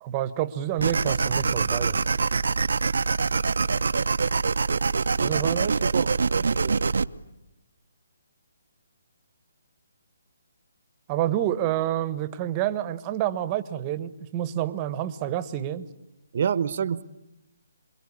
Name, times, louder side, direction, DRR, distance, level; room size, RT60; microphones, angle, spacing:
voice 1, 0.0-2.0 5.2-5.7 11.1-15.9, right 12 dB, 20° right, 13 dB, 1.2 m, -28 dB
sound 1, 0.8-7.0, right 4 dB, 75° right, 0.9 m, -24 dB
voice 2, 5.5-6.9 16.3-17.0, right 7 dB, 50° right, 16 dB, 1.1 m, -28 dB
28.0 x 22.0 x 8.6 m, 0.90 s
hypercardioid pair, 160°, 0 cm